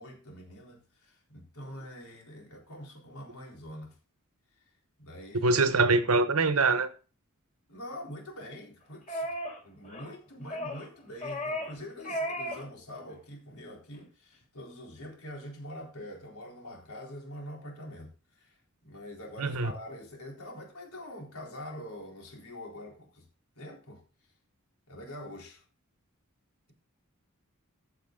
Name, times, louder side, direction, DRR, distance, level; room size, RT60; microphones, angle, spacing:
voice 1, 0.0-4.0 4.6-4.7 5.0-5.6 7.7-9.3 9.6-23.2 23.6-24.0 24.9-25.6, left 1 dB, 80° left, 3.8 m, -45 dB
voice 2, 5.4-6.9 19.4-19.7, right 3 dB, 75° right, 1.2 m, -24 dB
sound 1, 9.1-9.6 9.8-10.1 10.5-10.9 11.2-11.8 12.0-12.6 13.0-13.1, equal, 35° left, 3.7 m, -35 dB
14.5 x 6.8 x 3.8 m
head